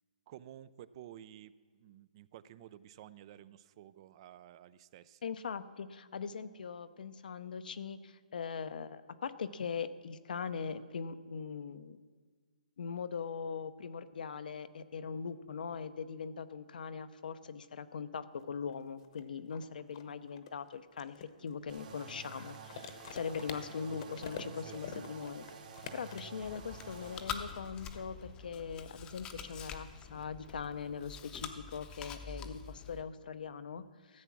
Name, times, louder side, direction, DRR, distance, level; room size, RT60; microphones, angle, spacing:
voice 1, 0.3-5.3 24.6-25.0, right 11 dB, 35° right, 17 dB, 0.4 m, -53 dB
voice 2, 5.2-12.0 12.8-25.5 25.9-34.2, left 6 dB, 75° left, 12 dB, 0.7 m, -41 dB
sound 1, 18.4-18.5 18.7-26.9, left 7 dB, 45° left, 1.0 m, -47 dB
sound 2, 21.7-27.2, right 5 dB, 65° right, 2.4 m, -50 dB
Chewing mastication, 26.4-33.0, left 6 dB, 15° left, 0.7 m, -46 dB
14.0 x 8.2 x 6.0 m, 1.5 s
hypercardioid pair, 155°, 5 cm